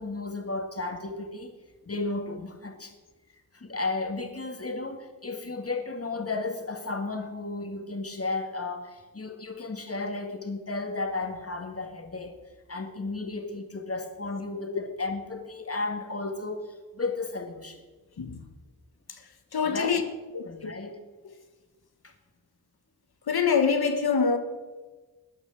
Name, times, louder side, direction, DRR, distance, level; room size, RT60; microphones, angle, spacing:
voice 1, 0.0-1.6 1.8-2.9 3.5-12.4 12.7-17.8 19.6-19.9 20.5-21.0 22.0-22.1, left 3 dB, 40° left, 5 dB, 2.1 m, -34 dB
voice 2, 19.5-20.0 20.3-20.7 23.3-24.4, left 5 dB, 90° left, 7 dB, 1.4 m, -25 dB
13.0 x 9.7 x 7.8 m, 1.2 s
wide cardioid pair, 55°, 37 cm